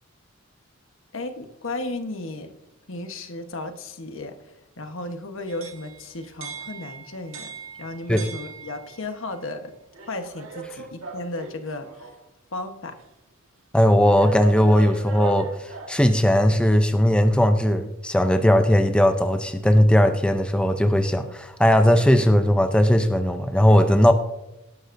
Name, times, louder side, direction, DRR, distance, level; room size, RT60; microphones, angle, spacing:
voice 1, 1.1-2.5 2.9-4.3 4.8-7.5 7.8-9.7 10.1-11.9 12.5-12.9, left 2 dB, 70° left, 7 dB, 1.2 m, -34 dB
sound 1, 5.5-9.1 9.9-12.2 13.0-13.1 14.1-16.1, right 4 dB, 85° right, 1.6 m, -39 dB
voice 2, 13.7-15.5 15.9-24.1, equal, 5° left, 7 dB, 0.6 m, -18 dB
18.0 x 11.5 x 2.6 m, 0.92 s
head